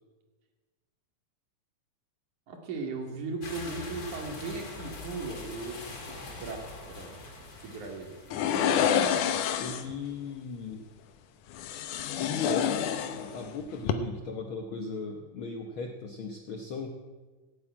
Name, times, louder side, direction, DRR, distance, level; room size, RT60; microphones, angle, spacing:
voice 1, 2.5-7.2 7.6-9.3, right 3 dB, 70° right, 2 dB, 3.6 m, -38 dB
sound 1, 3.4-8.8, left 3 dB, 35° left, 2.0 m, -43 dB
sound 2, 8.3-10.0 11.5-13.5 13.8-13.9, left 9 dB, 80° left, 2.4 m, -28 dB
voice 2, 9.6-10.8 12.2-12.9 13.1-16.9, left 4 dB, 65° left, 3 dB, 1.3 m, -37 dB
16.0 x 9.1 x 8.7 m, 1.3 s
omnidirectional pair, 3.6 m